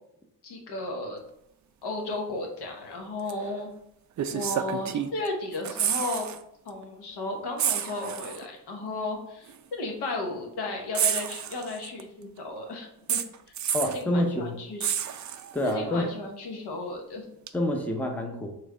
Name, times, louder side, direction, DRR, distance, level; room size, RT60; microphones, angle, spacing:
voice 1, 0.4-1.2 1.8-3.7 4.3-6.3 6.6-13.2 13.8-15.0 15.6-17.3, left 2 dB, 75° left, 1 dB, 1.0 m, -34 dB
sound 1, 3.3-3.4 4.2-5.3 5.5-6.4 6.7-6.8 7.6-8.4 9.5-9.6 10.9-12.0 13.1-14.0 14.8-15.7 17.5-17.6, right 9 dB, 45° right, 0.4 m, -29 dB
voice 2, 13.7-14.6 15.5-16.1 17.5-18.5, left 1 dB, 5° left, 2 dB, 0.6 m, -27 dB
3.3 x 3.1 x 3.7 m, 0.78 s
cardioid pair, 70°, 41 cm